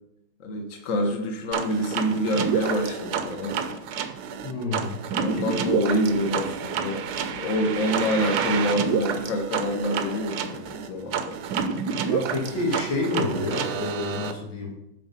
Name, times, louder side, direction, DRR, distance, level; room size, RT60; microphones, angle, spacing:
voice 1, 0.4-3.6 5.1-11.4, equal, 50° left, 3 dB, 1.3 m, -26 dB
sound 1, 1.5-14.3, right 7 dB, 70° right, 1.1 m, -29 dB
voice 2, 4.4-5.0 12.0-14.7, left 2 dB, 90° left, -1 dB, 2.6 m, -28 dB
9.3 x 4.1 x 5.5 m, 0.85 s
omnidirectional pair, 2.1 m